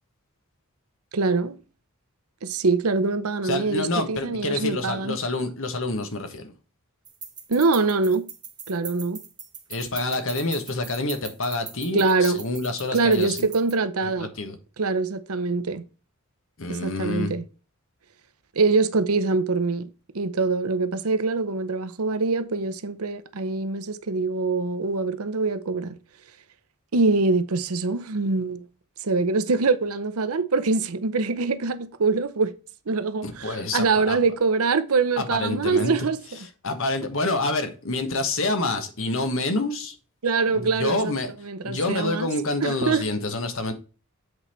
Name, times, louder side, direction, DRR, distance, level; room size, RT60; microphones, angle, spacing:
voice 1, 1.1-1.6 2.4-5.2 7.5-8.3 8.7-9.2 11.9-12.4 12.9-14.3 14.8-15.8 16.7-17.4 18.6-19.9 20.1-26.0 26.9-28.7 29.0-32.5 32.9-36.2 40.2-41.1 41.4-42.3 42.6-43.0, right 3 dB, 80° right, 0.8 m, -24 dB
voice 2, 3.4-6.5 9.7-13.5 14.0-14.6 16.6-17.3 33.2-34.2 35.2-36.1 36.3-39.9 40.5-41.3 41.6-43.7, left 2 dB, 65° left, 1.4 m, -27 dB
sound 1, 7.0-13.7, right 6 dB, 20° right, 1.2 m, -41 dB
8.0 x 4.1 x 4.3 m
head